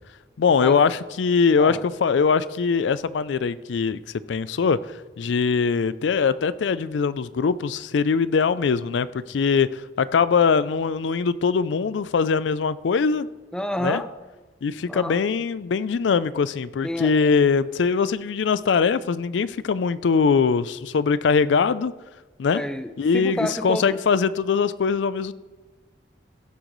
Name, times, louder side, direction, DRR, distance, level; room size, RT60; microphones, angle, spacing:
voice 1, 0.4-4.0 4.3-4.8 5.2-13.3 13.8-14.0 14.6-21.9 22.4-22.6 23.0-25.3, left 5 dB, 85° left, 16 dB, 0.4 m, -22 dB
voice 2, 13.5-14.1 14.9-15.2 16.8-17.3 22.5-24.0, left 1 dB, 5° left, 9 dB, 0.5 m, -29 dB
16.0 x 7.6 x 3.1 m, 1.3 s
head